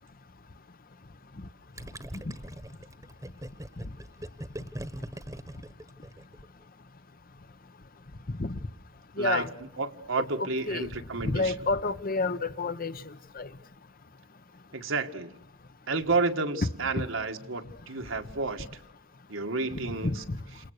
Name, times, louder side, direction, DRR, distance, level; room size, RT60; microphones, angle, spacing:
Gurgling, 1.8-6.5, right 1 dB, 15° right, 1.3 m, -41 dB
voice 1, 9.2-9.5 10.2-10.9 11.2-12.9 13.3-13.5 19.7-20.4, left 3 dB, 45° left, 1.0 m, -30 dB
voice 2, 9.8-11.5 14.7-15.3 15.9-18.8 19.3-20.2, right 3 dB, 80° right, 1.9 m, -31 dB
29.0 x 28.5 x 6.6 m
head